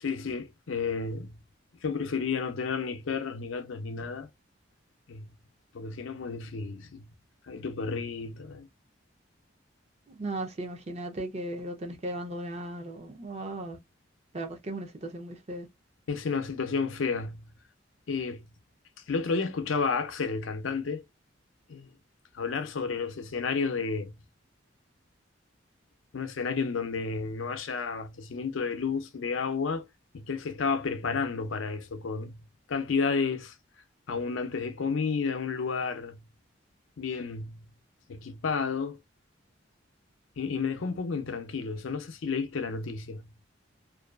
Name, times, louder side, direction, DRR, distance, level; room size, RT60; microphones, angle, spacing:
voice 1, 0.0-1.4 1.8-4.3 5.1-5.3 5.7-7.1 7.5-8.7 16.1-17.5 18.1-18.5 19.1-21.0 21.7-21.9 22.3-24.2 26.1-29.9 30.1-33.5 34.1-36.3 37.0-37.7 38.1-39.0 40.4-43.3, left 5 dB, 85° left, 0.5 m, -31 dB
voice 2, 10.2-13.8 14.3-15.7, right 1 dB, 35° right, 0.5 m, -36 dB
2.5 x 2.3 x 2.3 m
head